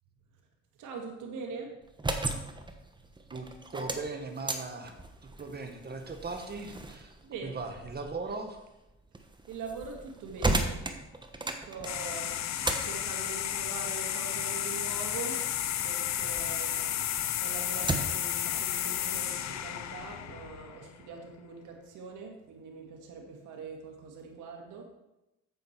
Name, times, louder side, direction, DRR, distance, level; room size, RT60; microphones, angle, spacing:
voice 1, 0.8-1.7 7.2-7.6 9.5-10.8 11.5-15.4 15.8-24.8, right 4 dB, 90° right, 2 dB, 2.2 m, -43 dB
sound 1, 1.8-16.5 16.9-18.3, right 2 dB, 15° right, 1.2 m, -37 dB
voice 2, 3.3-4.9 5.2-7.1 7.4-8.6, right 3 dB, 30° right, 5 dB, 1.6 m, -38 dB
sound 2, 11.8-21.0, left 11 dB, 65° left, 0.7 m, -32 dB
9.3 x 8.0 x 4.6 m, 0.95 s
cardioid pair, 90°, 30 cm